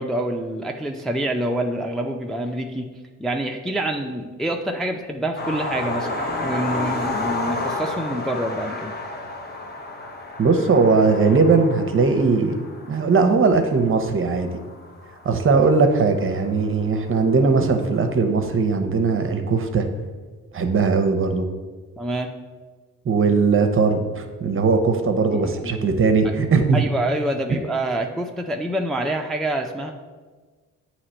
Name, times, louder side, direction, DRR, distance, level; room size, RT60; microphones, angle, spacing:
voice 1, 0.0-2.9 3.2-8.9 22.0-22.3 25.3-25.9 26.7-29.9, right 1 dB, ahead, 2 dB, 0.4 m, -27 dB
sound 1, 5.4-16.4 17.4-17.5 17.9-18.0, left 2 dB, 30° left, 1.0 m, -31 dB
voice 2, 10.4-12.6 12.9-14.5 15.2-19.8 20.5-21.4 23.1-26.8 27.5-27.6, right 4 dB, 40° right, 7 dB, 0.8 m, -19 dB
8.3 x 2.9 x 4.3 m, 1.4 s
supercardioid pair, 70°, 33 cm